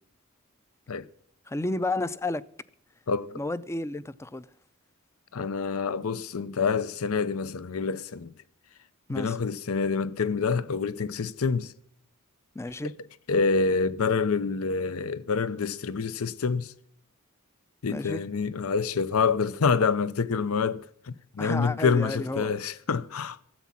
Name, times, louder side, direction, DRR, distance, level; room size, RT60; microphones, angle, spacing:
voice 1, 1.5-2.4 3.4-4.5 9.1-9.4 12.5-12.9 17.9-18.2 21.4-22.5, left 2 dB, 15° left, 0.4 m, -31 dB
voice 2, 3.1-3.4 5.3-8.3 9.1-11.7 13.3-16.7 17.8-23.4, left 5 dB, 75° left, 0.6 m, -27 dB
13.5 x 8.3 x 7.2 m
head